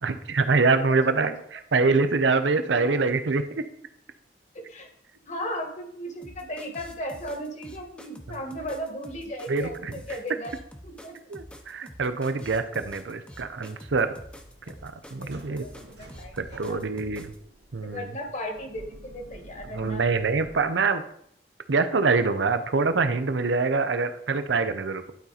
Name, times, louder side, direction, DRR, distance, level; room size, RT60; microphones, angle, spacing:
voice 1, 0.0-3.6 8.3-8.4 9.5-9.9 11.3-14.1 14.8-15.7 16.4-17.3 17.7-18.1 19.7-21.0 21.7-25.1, right 4 dB, 85° right, 10 dB, 0.7 m, -25 dB
voice 2, 4.5-4.9 5.3-10.5 10.8-11.2 14.6-14.7 15.2-16.8 17.8-20.0, equal, 40° left, 4 dB, 1.6 m, -36 dB
sound 1, 6.2-17.4, equal, 5° left, 0.8 m, -46 dB
sound 2, 13.9-20.6, right 1 dB, 65° right, 1.0 m, -49 dB
11.5 x 4.3 x 4.0 m, 0.69 s
head